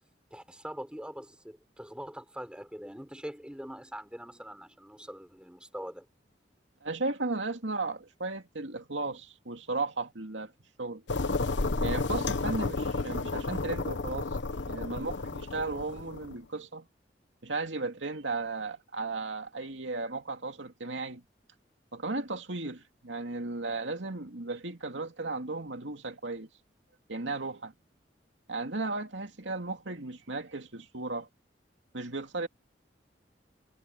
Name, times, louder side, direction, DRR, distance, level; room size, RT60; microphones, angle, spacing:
voice 1, 0.3-6.1 14.9-15.1, equal, 5° right, 4.6 m, -43 dB
voice 2, 6.8-10.5 10.8-11.0 11.8-14.3 14.7-16.9 17.4-21.2 21.9-26.5 27.1-27.7 28.5-31.3 31.9-32.5, right 3 dB, 90° right, 2.5 m, -35 dB
sound 1, 11.1-16.3, left 3 dB, 80° left, 1.0 m, -32 dB
head